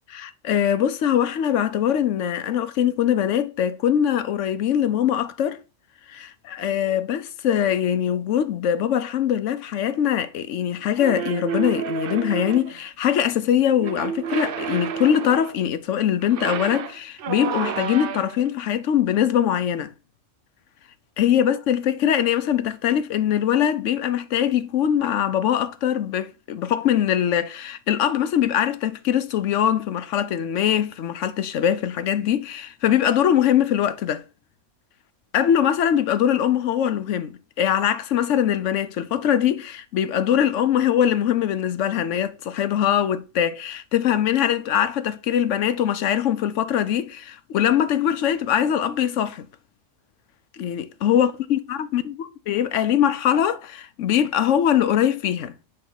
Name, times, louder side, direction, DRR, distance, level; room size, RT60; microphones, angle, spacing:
voice 1, 0.1-5.6 6.1-19.9 21.2-34.2 35.3-49.5 50.6-55.5, left 10 dB, 80° left, 1.0 m, -22 dB
sound 1, 11.0-12.8 13.8-15.6 16.2-18.5, right 8 dB, 55° right, 0.7 m, -30 dB
8.6 x 2.9 x 5.6 m
omnidirectional pair, 1.3 m